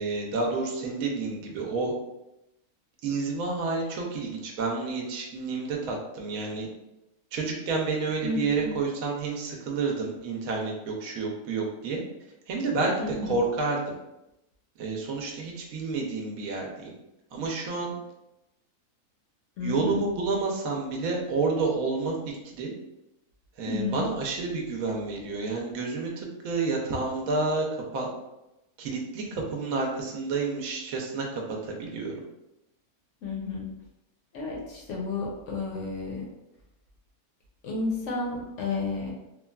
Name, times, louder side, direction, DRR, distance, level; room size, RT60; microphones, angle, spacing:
voice 1, 0.0-1.9 3.0-6.7 7.3-12.0 12.5-14.0 14.8-16.9 17.3-17.9 19.6-22.1 22.4-22.7 23.6-27.7 27.9-28.1 28.8-32.1, right 3 dB, 70° right, -1 dB, 1.0 m, -29 dB
voice 2, 8.2-8.7 13.0-13.4 19.6-20.1 23.6-24.1 33.2-33.7 34.3-36.2 37.6-39.1, left 3 dB, 65° left, -2 dB, 0.8 m, -31 dB
3.2 x 2.3 x 2.2 m, 0.90 s
omnidirectional pair, 1.6 m